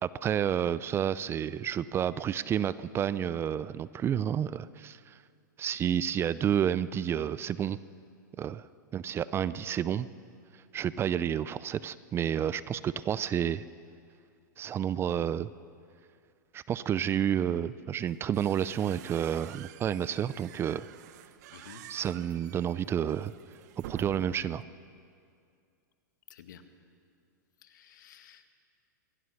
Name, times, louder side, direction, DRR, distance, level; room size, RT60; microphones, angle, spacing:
voice 1, 0.0-5.2 5.6-7.8 8.4-8.7 8.9-10.1 10.7-13.6 14.6-15.5 16.5-20.9 21.9-23.3 23.9-24.6, right 9 dB, 25° right, 17 dB, 0.5 m, -30 dB
sound 1, 18.1-24.6, right 13 dB, 55° right, 0.9 m, -49 dB
voice 2, 21.5-21.8 26.3-26.6 27.7-28.5, left 9 dB, 70° left, 8 dB, 1.9 m, -52 dB
24.0 x 17.0 x 6.5 m, 2.3 s
hypercardioid pair, 115°, 11 cm